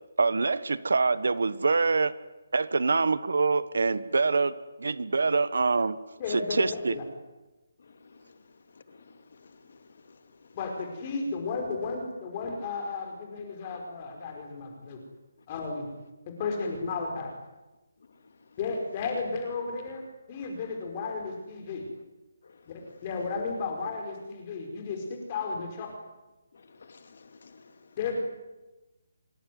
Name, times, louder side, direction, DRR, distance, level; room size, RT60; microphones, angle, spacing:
voice 1, 0.2-2.1 2.5-6.0 6.3-7.0, right 4 dB, 70° right, 1.4 m, -25 dB
voice 2, 6.2-7.0 10.5-15.0 15.5-15.9 16.4-17.3 18.6-20.0 20.3-21.8 22.7-22.8 23.0-25.9 28.0-28.2, left 4 dB, 20° left, 5.2 m, -33 dB
voice 3, 7.8-10.6 18.0-18.6 22.4-23.0 25.6-25.7 26.5-28.0, left 4 dB, 45° left, 2.7 m, -55 dB
26.0 x 23.0 x 9.6 m
hypercardioid pair, 180°, 0 cm